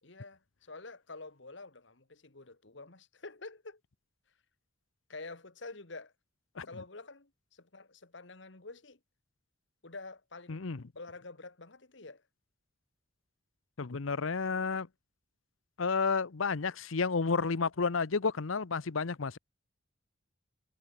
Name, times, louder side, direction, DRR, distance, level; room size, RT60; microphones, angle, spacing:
voice 1, 0.0-3.8 5.1-6.1 6.7-9.0 9.8-10.7 11.0-12.2, left 3 dB, 65° left, 1.7 m, -48 dB
voice 2, 10.5-10.8 13.8-14.9 15.8-19.4, left 4 dB, 85° left, 0.8 m, -31 dB
head